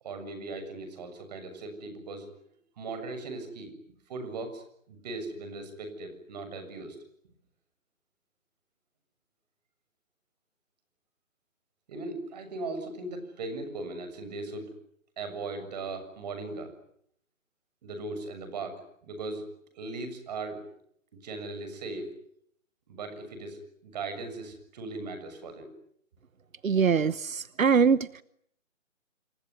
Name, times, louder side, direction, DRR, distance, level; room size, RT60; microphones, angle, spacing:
voice 1, 0.0-2.3 2.8-3.7 4.1-7.0 11.9-14.7 15.2-16.7 17.8-19.5 19.7-20.6 21.1-22.1 22.9-25.7, right 3 dB, 30° right, 8 dB, 6.9 m, -38 dB
voice 2, 26.6-28.2, right 6 dB, 85° right, 17 dB, 1.1 m, -23 dB
28.5 x 22.5 x 9.5 m, 0.70 s
hypercardioid pair, 160°, 39 cm